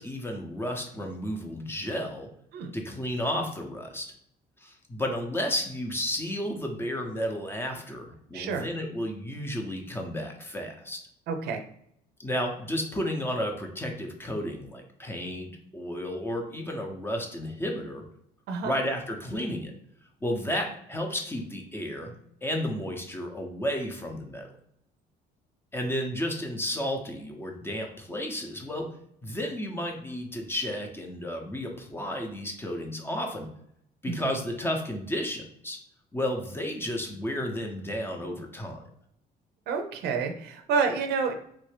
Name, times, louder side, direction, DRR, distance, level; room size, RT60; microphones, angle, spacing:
voice 1, 0.0-2.3 2.7-4.1 4.6-11.0 12.2-18.0 18.6-19.7 20.2-22.1 22.4-24.5 25.7-28.9 29.2-33.5 34.0-35.8 36.1-38.8, equal, 15° left, 3 dB, 0.6 m, -32 dB
voice 2, 8.3-8.7 11.3-11.6 18.5-18.7 34.1-34.3 39.7-41.3, right 5 dB, 75° right, 5 dB, 0.5 m, -29 dB
3.2 x 2.5 x 3.2 m, 0.70 s
cardioid pair, 110°, 17 cm